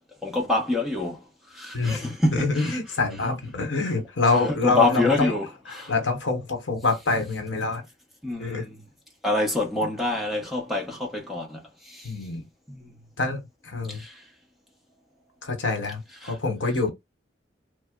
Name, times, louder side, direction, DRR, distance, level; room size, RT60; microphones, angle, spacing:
voice 1, 0.2-2.8 4.5-5.5 5.7-5.9 8.2-8.8 9.2-12.1 12.7-12.9 13.9-14.2 16.2-16.4, left 2 dB, ahead, 0.8 m, -26 dB
voice 2, 1.7-5.3 5.7-7.8 8.4-8.7 12.0-12.5 13.2-14.0 15.4-16.9, left 3 dB, 75° left, 1.0 m, -26 dB
3.3 x 2.1 x 3.6 m
head